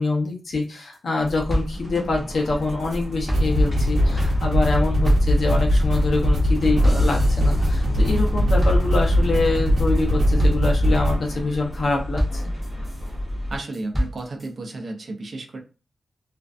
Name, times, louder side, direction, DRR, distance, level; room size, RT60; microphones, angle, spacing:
voice 1, 0.0-12.4, left 3 dB, 65° left, 0 dB, 0.7 m, -25 dB
sound 1, 0.6-0.7 0.9-1.0 1.3-2.9 3.3-8.3 8.6-9.3 9.7-10.0 10.4-10.9 11.3-11.8 12.2-13.1 13.5-14.5, equal, 5° left, 0.8 m, -30 dB
sound 2, 1.2-13.6, equal, 30° left, 0.9 m, -33 dB
sound 3, 2.9-3.0 3.3-11.1, equal, 85° right, 0.8 m, -20 dB
voice 2, 13.5-15.6, right 2 dB, 55° right, 3 dB, 0.5 m, -33 dB
2.5 x 2.2 x 2.4 m, 0.34 s
wide cardioid pair, 120°, 0 cm